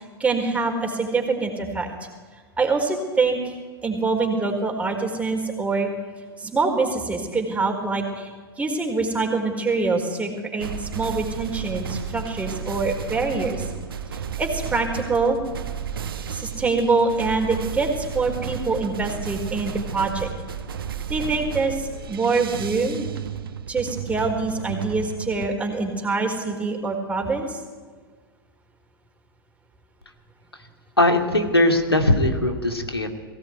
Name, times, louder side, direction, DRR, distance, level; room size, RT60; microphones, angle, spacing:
voice 1, 0.2-1.9 2.6-3.5 3.8-5.9 6.4-13.7 14.4-15.4 16.3-20.3 21.1-23.1 23.7-27.6, right 3 dB, 10° right, 3 dB, 4.5 m, -25 dB
sound 1, 10.6-25.5, right 7 dB, 65° right, 1.6 m, -33 dB
voice 2, 31.0-33.1, left 1 dB, 90° left, 5 dB, 2.6 m, -20 dB
22.0 x 17.5 x 9.6 m, 1.5 s
figure-of-eight pair, 95°, 13 cm